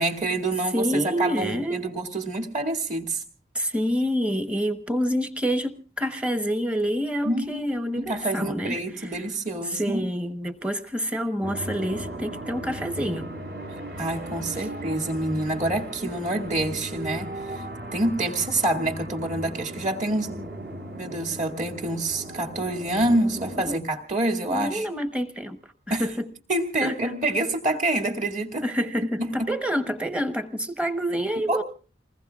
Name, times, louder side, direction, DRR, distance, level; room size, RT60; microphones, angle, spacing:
voice 1, 0.0-3.2 7.2-10.0 14.0-17.6 17.9-20.4 20.9-24.9 25.9-26.1 26.5-28.7 29.4-29.5 31.5-31.6, right 2 dB, 40° right, 2 dB, 2.3 m, -27 dB
voice 2, 0.7-1.9 3.5-9.1 9.6-13.3 13.9-14.1 14.6-14.7 23.7-23.8 24.4-25.6 25.9-26.3 26.8-26.9 28.6-31.6, equal, 5° right, 8 dB, 1.0 m, -27 dB
sound 1, 11.4-23.8, right 1 dB, 60° right, 3.6 m, -37 dB
28.5 x 20.5 x 2.4 m, 0.37 s
head